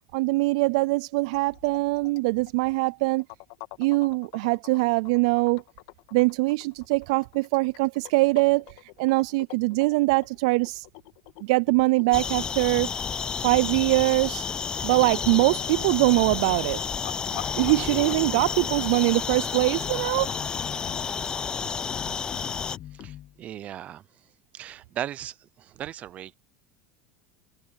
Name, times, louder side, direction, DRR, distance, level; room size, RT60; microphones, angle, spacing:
voice 1, 0.1-3.2 3.8-5.6 6.1-8.6 9.0-10.9 11.4-12.9 13.4-14.4 14.8-16.8 17.3-20.3, right 24 dB, 75° right, 0.3 m, -23 dB
sound 1, 1.3-18.9, left 21 dB, 70° left, 1.8 m, -46 dB
sound 2, 12.1-22.8, left 6 dB, 20° left, 0.5 m, -31 dB
sound 3, 15.4-16.9 17.3-19.1 19.6-21.2 21.9-23.4, left 13 dB, 45° left, 1.0 m, -43 dB
voice 2, 23.0-24.0 24.5-26.3, right 11 dB, 40° right, 0.7 m, -37 dB
supercardioid pair, 125°, 4 cm